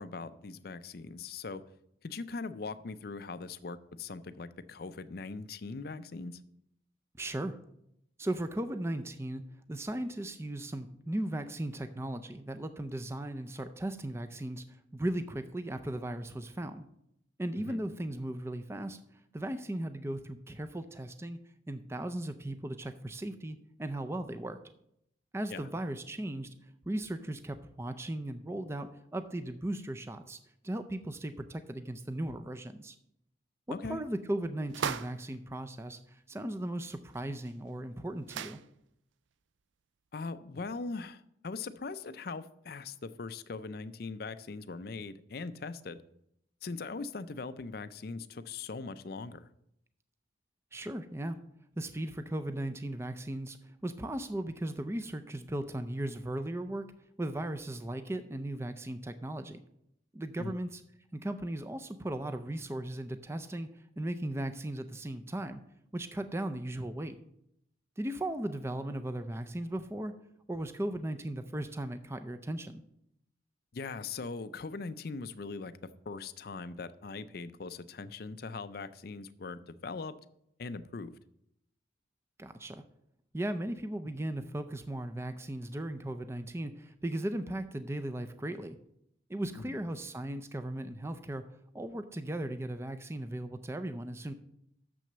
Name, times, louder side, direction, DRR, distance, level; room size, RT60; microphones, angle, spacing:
voice 1, 0.0-1.6 2.0-6.4 17.6-17.8 25.5-25.6 33.7-34.0 40.1-46.0 46.6-49.5 60.4-60.5 73.7-75.7 76.1-80.2 80.6-81.1 89.6-89.8, left 4 dB, 50° left, 14 dB, 0.4 m, -40 dB
voice 2, 7.2-7.5 8.2-9.4 9.7-14.6 14.9-16.8 17.4-19.0 19.3-21.4 21.7-24.6 25.3-26.5 26.9-30.4 30.6-33.0 33.7-38.6 50.7-51.4 51.8-56.9 57.2-59.6 60.1-60.8 61.1-63.7 64.0-65.6 65.9-67.2 68.0-70.2 70.5-72.8 82.4-82.8 83.3-88.8 89.3-91.4 91.7-94.3, right 1 dB, 15° right, 9 dB, 0.4 m, -37 dB
sound 1, 34.7-35.3 37.1-37.2 37.5-37.6 38.2-38.7, right 7 dB, 75° right, 0.4 m, -36 dB
7.0 x 6.1 x 6.6 m, 0.75 s
head